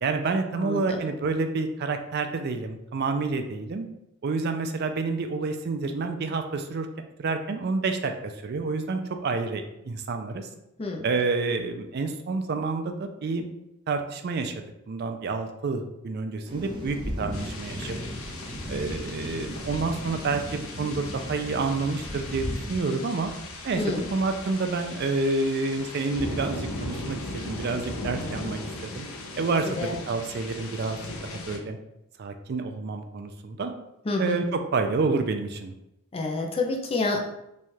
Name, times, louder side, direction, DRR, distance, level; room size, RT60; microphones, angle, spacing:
voice 1, 0.0-3.9 4.2-6.9 7.2-10.5 11.0-13.4 13.9-18.0 18.7-23.3 23.6-29.1 29.4-31.8 32.2-33.7 34.2-35.7, right 3 dB, 45° right, 6 dB, 0.4 m, -29 dB
voice 2, 0.5-1.0 10.8-11.1 23.8-24.1 29.7-29.9 34.1-34.4 36.1-37.2, left 2 dB, 25° left, 1 dB, 0.4 m, -28 dB
sound 1, 16.4-22.8, equal, 20° right, 0.7 m, -36 dB
sound 2, 17.3-31.6, left 2 dB, 70° left, 0.6 m, -38 dB
3.1 x 2.3 x 4.3 m, 0.86 s
head